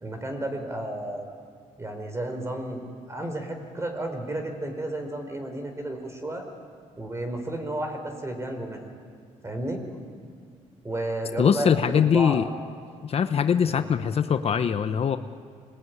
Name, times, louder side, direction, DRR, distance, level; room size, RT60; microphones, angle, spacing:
voice 1, 0.0-1.3 1.8-2.8 3.1-6.5 7.0-8.8 9.4-9.8 10.8-12.4 13.6-13.9, right 1 dB, 20° right, 5 dB, 4.9 m, -32 dB
voice 2, 11.4-12.4 13.0-15.2, left 7 dB, 50° left, 9 dB, 1.0 m, -22 dB
26.5 x 20.5 x 9.7 m, 2.2 s
cardioid pair, 90°, 13 cm